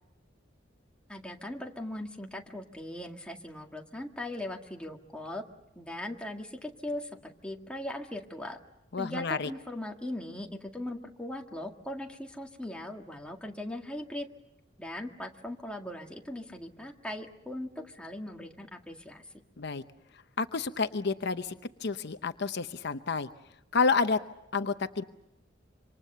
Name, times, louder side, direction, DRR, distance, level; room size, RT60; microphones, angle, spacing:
voice 1, 1.1-5.4 5.8-8.6 9.0-14.3 14.8-19.4, left 1 dB, 5° left, 2 dB, 2.0 m, -39 dB
voice 2, 8.9-9.5 19.6-19.8 20.4-21.5 21.8-23.3 23.7-24.2 24.5-25.0, left 4 dB, 60° left, 10 dB, 0.8 m, -29 dB
27.0 x 25.5 x 6.8 m, 0.90 s
head